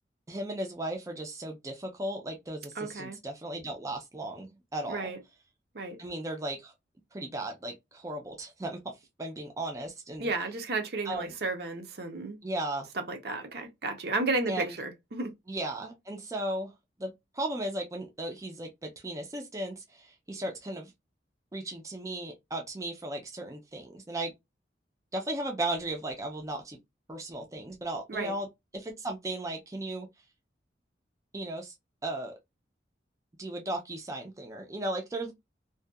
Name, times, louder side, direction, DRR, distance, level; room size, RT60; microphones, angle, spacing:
voice 1, 0.3-5.1 6.0-6.7 7.1-10.3 11.0-11.3 12.4-12.9 14.5-14.7 15.5-16.7 17.0-20.9 21.5-24.3 25.1-26.8 27.1-28.5 28.7-30.1 31.3-31.7 32.0-32.3 33.4-35.3, right 1 dB, 15° right, 0.4 m, -36 dB
voice 2, 2.8-3.2 4.9-5.2 5.7-6.0 10.2-12.4 13.0-15.3 28.1-28.3, right 3 dB, 60° right, 0.6 m, -33 dB
2.6 x 2.2 x 2.2 m
head